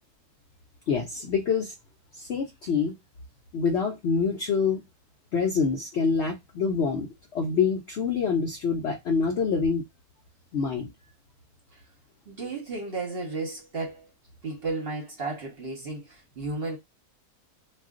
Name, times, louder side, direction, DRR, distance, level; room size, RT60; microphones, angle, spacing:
voice 1, 0.9-1.7 2.2-2.9 3.5-4.8 5.3-9.8 10.5-10.9, left 5 dB, 65° left, 0.7 m, -26 dB
voice 2, 12.3-14.1 14.4-16.8, right 3 dB, 50° right, 0.8 m, -33 dB
2.4 x 2.3 x 3.5 m
omnidirectional pair, 1.6 m